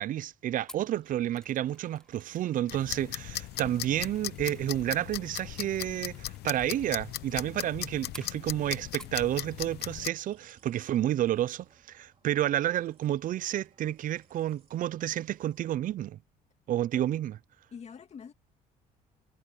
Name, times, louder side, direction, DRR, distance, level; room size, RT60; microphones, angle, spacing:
voice 1, 0.0-16.2 16.7-17.3, right 12 dB, 55° right, 0.5 m, -30 dB
Mechanisms, 0.7-9.3 9.6-10.0 10.3-10.4, left 1 dB, 5° left, 1.2 m, -55 dB
sound 1, 0.8-15.8, right 6 dB, 35° right, 3.1 m, -66 dB
sound 2, 2.7-10.1, left 15 dB, 75° left, 0.9 m, -38 dB
voice 2, 17.7-18.3, left 6 dB, 40° left, 2.3 m, -45 dB
cardioid pair, 110°, 17 cm